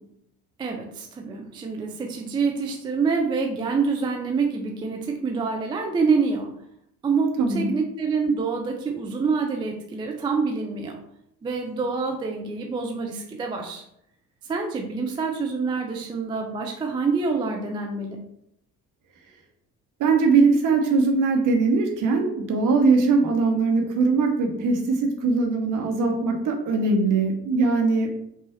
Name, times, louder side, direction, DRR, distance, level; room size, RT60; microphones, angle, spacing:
voice 1, 0.6-6.5 7.0-11.0 11.4-13.8 14.4-18.2, right 4 dB, 10° right, 2 dB, 0.3 m, -26 dB
voice 2, 7.4-7.7 20.0-28.1, right 4 dB, 40° right, 3 dB, 1.0 m, -21 dB
5.4 x 2.4 x 4.1 m, 0.75 s
figure-of-eight pair, 55°, 47 cm